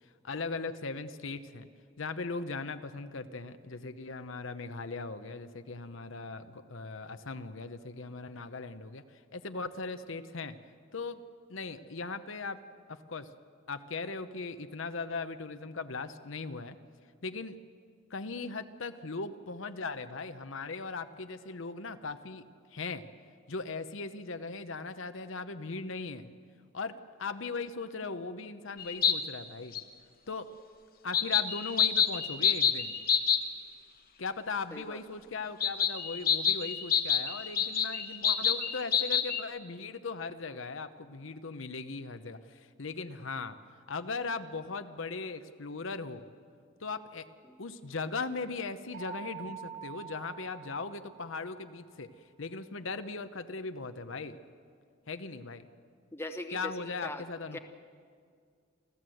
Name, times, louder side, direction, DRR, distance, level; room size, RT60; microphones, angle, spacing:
voice 1, 0.2-1.7 2.0-10.6 10.9-11.2 11.5-12.6 12.9-13.3 13.7-16.8 17.2-17.6 18.1-22.4 22.7-23.1 23.5-26.3 26.7-29.8 30.3-30.5 31.0-33.0 34.2-43.6 43.9-46.3 46.8-47.3 47.6-52.1 52.4-54.4 55.1-55.7 56.5-57.6, left 4 dB, 75° left, 10 dB, 0.9 m, -38 dB
sound 1, 28.8-29.2 29.7-29.8 31.1-33.4 35.6-39.4, left 8 dB, 45° left, 1.1 m, -27 dB
voice 2, 34.7-35.0 47.4-47.6 56.1-57.2 57.5-57.6, left 1 dB, 10° left, 6 dB, 0.9 m, -40 dB
sound 2, 48.9-51.7, right 7 dB, 55° right, 6.5 m, -45 dB
28.5 x 14.0 x 7.8 m, 2.1 s
head